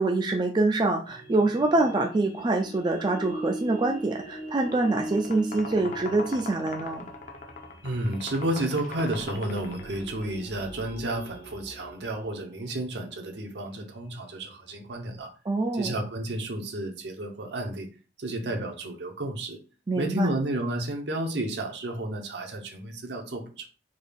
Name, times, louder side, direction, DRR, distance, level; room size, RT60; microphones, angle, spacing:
voice 1, 0.0-7.1 15.5-15.9 19.9-20.3, right 2 dB, 25° right, 3 dB, 0.3 m, -25 dB
sound 1, 1.1-15.2, right 1 dB, 90° left, 0.9 m, -42 dB
sound 2, 4.5-10.3, left 3 dB, 40° left, 0.5 m, -41 dB
voice 2, 7.8-15.3 15.7-17.9 18.2-19.6 20.0-23.7, right 1 dB, 70° right, 4 dB, 0.8 m, -31 dB
3.7 x 2.3 x 3.4 m, 0.35 s
head